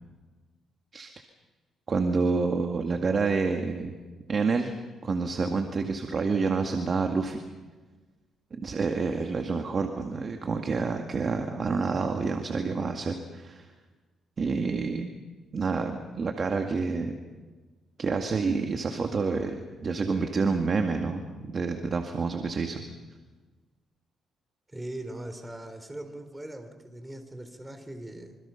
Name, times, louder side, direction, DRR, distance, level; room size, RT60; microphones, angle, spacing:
voice 1, 1.9-4.0 4.3-4.7 5.0-7.4 8.5-13.7 14.4-15.1 15.5-17.2 18.0-22.8, right 4 dB, 40° right, 4 dB, 2.0 m, -28 dB
voice 2, 24.7-28.4, right 1 dB, 10° right, 7 dB, 3.9 m, -40 dB
26.0 x 26.0 x 5.8 m, 1.3 s
cardioid pair, 90°, 0 cm